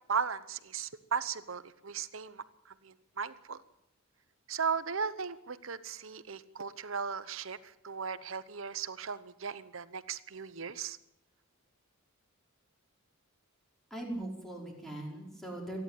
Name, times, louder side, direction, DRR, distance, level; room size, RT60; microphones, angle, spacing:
voice 1, 0.1-2.4 2.8-3.6 4.5-7.6 7.8-11.0, right 6 dB, 65° right, 15 dB, 1.0 m, -36 dB
voice 2, 13.9-15.8, right 1 dB, ahead, -1 dB, 5.0 m, -40 dB
27.5 x 11.0 x 9.2 m, 0.84 s
head